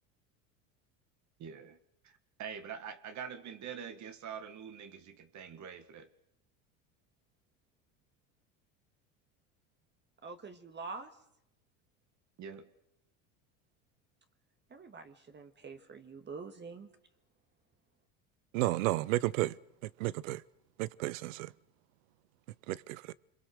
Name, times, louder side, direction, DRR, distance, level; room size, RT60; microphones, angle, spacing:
voice 1, 1.4-1.8 2.0-2.1 2.4-6.1 12.4-12.7, right 7 dB, 45° right, 1.8 m, -44 dB
voice 2, 10.2-11.1 14.7-16.9, right 4 dB, 25° right, 1.7 m, -45 dB
voice 3, 18.5-19.6 19.8-20.4 20.8-21.5 22.7-23.1, right 18 dB, 75° right, 0.8 m, -32 dB
26.0 x 22.0 x 6.4 m
hypercardioid pair, 90°, 40 cm